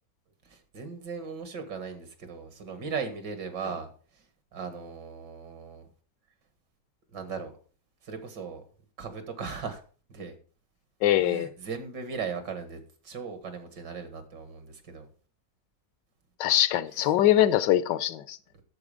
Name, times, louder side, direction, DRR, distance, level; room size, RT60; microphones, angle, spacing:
voice 1, 0.5-3.9 4.5-5.9 7.1-7.5 8.0-8.6 9.0-9.8 10.1-10.4 11.2-15.1 16.9-17.1, right 5 dB, 80° right, 2.3 m, -38 dB
voice 2, 11.0-11.5 16.4-18.4, left 12 dB, 85° left, 1.3 m, -23 dB
10.5 x 7.5 x 5.0 m
omnidirectional pair, 1.9 m